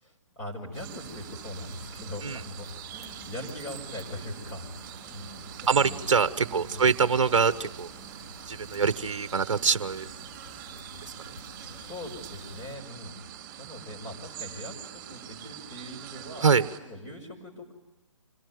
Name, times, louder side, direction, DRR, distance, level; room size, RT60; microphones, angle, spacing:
voice 1, 0.0-4.7 5.1-6.0 6.5-6.9 11.5-13.1 13.6-16.5 16.8-17.7, left 1 dB, 15° left, 0 dB, 5.5 m, -41 dB
sound 1, 0.7-12.8, left 3 dB, 55° left, 6.2 m, -50 dB
sound 2, 0.7-16.8, right 10 dB, 25° right, 4.6 m, -44 dB
voice 2, 5.7-7.9 8.5-10.0 16.4-16.6, right 5 dB, 65° right, 14 dB, 1.0 m, -24 dB
26.5 x 18.0 x 9.4 m, 1.1 s
figure-of-eight pair, 145°, 17 cm